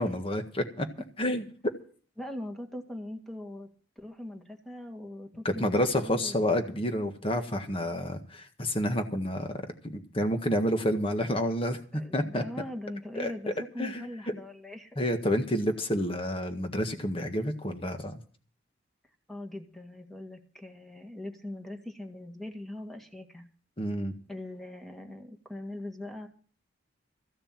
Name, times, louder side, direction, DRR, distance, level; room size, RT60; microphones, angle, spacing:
voice 1, 0.0-0.9 1.2-1.4 5.4-9.5 9.9-12.4 13.1-13.3 13.8-14.1 15.0-18.2 23.8-24.1, equal, 30° left, 6 dB, 1.6 m, -29 dB
voice 2, 2.2-3.7 4.0-6.3 11.9-15.0 19.3-23.5 24.3-26.3, left 1 dB, ahead, 3 dB, 1.8 m, -41 dB
15.0 x 6.8 x 8.7 m, 0.43 s
head